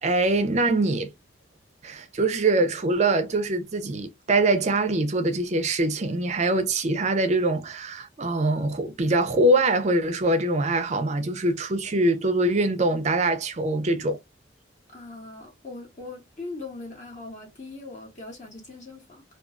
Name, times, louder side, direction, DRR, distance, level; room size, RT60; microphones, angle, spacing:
voice 1, 0.0-1.1 1.8-14.2, right 2 dB, 35° right, 0.4 m, -23 dB
voice 2, 14.9-19.2, left 3 dB, 40° left, 0.9 m, -40 dB
2.3 x 2.3 x 2.3 m
head